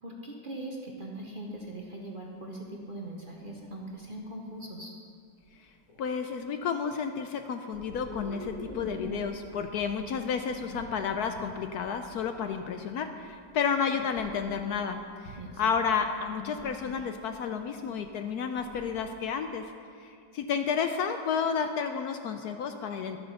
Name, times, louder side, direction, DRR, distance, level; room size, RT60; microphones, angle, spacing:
voice 1, 0.0-4.9 15.4-15.6, right 1 dB, 35° right, -1 dB, 0.9 m, -41 dB
sound 1, 0.9-1.0 1.5-1.7 2.4-2.5 3.4-4.1 5.4-5.5 5.9-6.3 7.7-19.0, left 2 dB, 50° left, 1.7 m, -45 dB
voice 2, 6.0-19.7 20.0-23.2, left 6 dB, 70° left, 7 dB, 1.0 m, -31 dB
11.5 x 7.8 x 6.5 m, 2.3 s
omnidirectional pair, 1.9 m